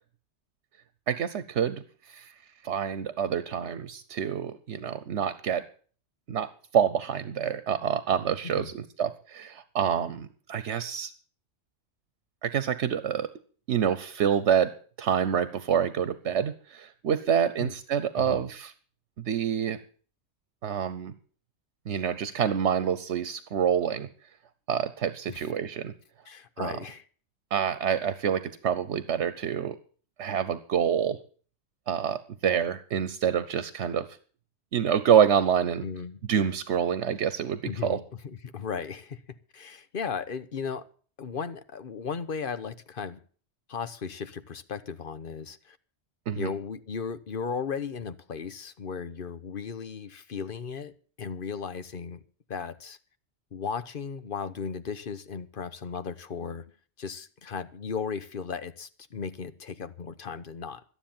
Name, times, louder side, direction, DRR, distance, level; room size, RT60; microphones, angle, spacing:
voice 1, 1.1-2.3 2.6-5.6 6.3-11.1 12.4-13.3 13.7-14.7 15.0-18.7 19.2-19.8 20.6-21.1 21.9-24.1 24.7-25.9 26.6-26.7 27.5-29.8 30.2-31.2 31.9-34.1 34.7-35.9 36.3-38.0 46.3-46.5, right 8 dB, 90° right, 14 dB, 1.2 m, -27 dB
voice 2, 18.2-18.5 25.3-25.5 26.3-27.0 35.8-36.2 37.6-39.2 39.5-40.8 41.2-43.2 43.7-45.8 46.4-52.2 52.5-53.0 53.5-56.6 57.0-60.8, left 6 dB, 55° left, 12 dB, 1.1 m, -36 dB
12.5 x 10.5 x 7.2 m, 0.42 s
omnidirectional pair, 1.1 m